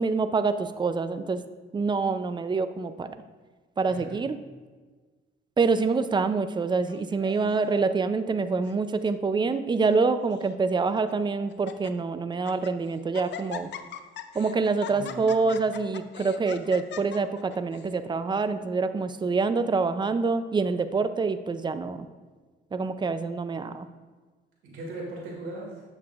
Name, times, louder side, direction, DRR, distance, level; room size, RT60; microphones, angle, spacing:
voice 1, 0.0-1.4 1.7-3.1 3.8-4.4 5.6-13.7 14.3-22.1 22.7-23.9, right 4 dB, 25° right, 11 dB, 0.4 m, -26 dB
voice 2, 3.9-4.2 14.9-15.5 24.6-25.8, right 2 dB, 85° right, -2 dB, 2.2 m, -39 dB
Laughter, 6.9-7.7 8.4-8.8 9.0-9.1 9.9-10.5 11.1-11.2 11.5-11.9 12.3-12.7 13.1-17.9, left 9 dB, 60° left, 0.5 m, -41 dB
8.4 x 6.7 x 2.4 m, 1.4 s
cardioid pair, 90°, 20 cm